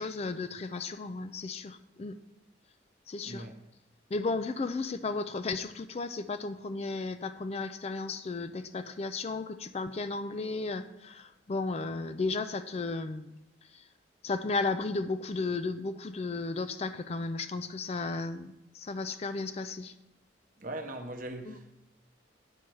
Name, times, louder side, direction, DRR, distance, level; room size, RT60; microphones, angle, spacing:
voice 1, 0.0-2.2 3.1-3.5 4.1-13.3 13.7-13.8 14.2-19.9 21.4-21.6, left 3 dB, 30° left, 0.4 m, -34 dB
voice 2, 20.6-21.7, right 1 dB, 45° right, 1.0 m, -40 dB
8.9 x 5.6 x 6.3 m
head